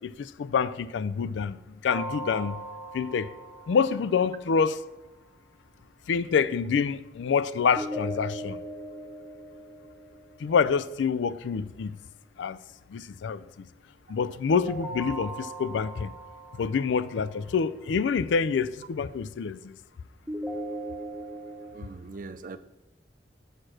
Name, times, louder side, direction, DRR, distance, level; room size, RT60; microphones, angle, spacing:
voice 1, 0.0-2.6 2.9-3.3 3.7-4.8 6.1-8.6 10.4-12.0 12.4-12.6 12.9-13.7 14.1-16.1 16.5-19.7, left 6 dB, 75° left, 0.4 m, -27 dB
sound 1, 1.9-4.8 7.8-10.8 14.5-17.7 20.3-21.8, right 1 dB, 5° right, 0.8 m, -39 dB
voice 2, 21.7-22.6, right 3 dB, 45° right, 0.4 m, -41 dB
6.6 x 6.4 x 6.0 m
head